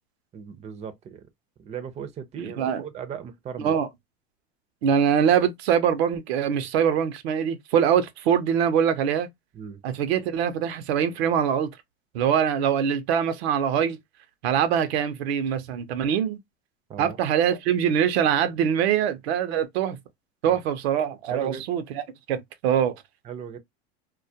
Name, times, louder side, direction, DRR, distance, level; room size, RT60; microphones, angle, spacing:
voice 1, 0.3-1.3 1.6-3.8 9.5-9.8 16.9-17.2 20.4-20.6 21.3-21.6 23.2-23.6, right 7 dB, 20° right, 0.4 m, -37 dB
voice 2, 2.4-2.8 3.6-3.9 4.8-9.3 9.8-11.7 12.1-14.0 14.4-16.4 17.0-20.0 20.4-22.0 22.3-22.9, right 8 dB, 80° right, 0.6 m, -23 dB
2.2 x 2.1 x 2.6 m
hypercardioid pair, 105°, 31 cm